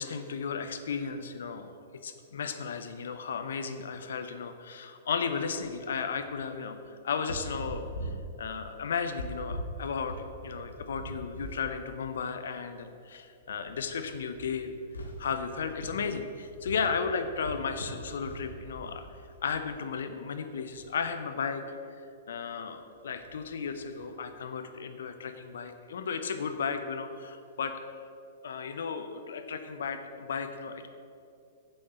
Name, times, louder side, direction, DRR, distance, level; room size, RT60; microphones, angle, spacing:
voice 1, 0.0-14.7 15.2-19.1 19.4-21.6 22.3-27.8 28.4-30.9, left 6 dB, 65° left, 7 dB, 0.7 m, -34 dB
sound 1, 5.6-5.7 6.1-6.3 7.1-11.7 12.0-12.2 13.0-13.1 13.4-19.7 20.5-20.9 23.0-24.1, equal, 85° left, 1.0 m, -43 dB
7.5 x 4.3 x 6.9 m, 2.5 s
figure-of-eight pair, 105°, 0 cm